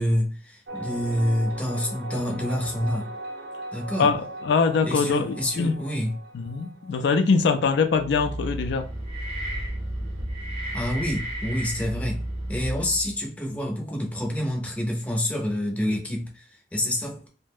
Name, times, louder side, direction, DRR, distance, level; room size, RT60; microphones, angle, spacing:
voice 1, 0.0-3.1 3.7-4.1 4.8-6.1 10.7-12.2 12.5-17.3, left 1 dB, 10° left, 0.5 m, -27 dB
sound 1, 0.7-8.2, right 1 dB, 75° right, 0.6 m, -39 dB
voice 2, 4.0-5.8 6.3-8.9, left 5 dB, 80° left, 0.3 m, -23 dB
sound 2, 7.9-13.2, right 1 dB, 35° right, 0.7 m, -32 dB
2.4 x 2.1 x 3.3 m
head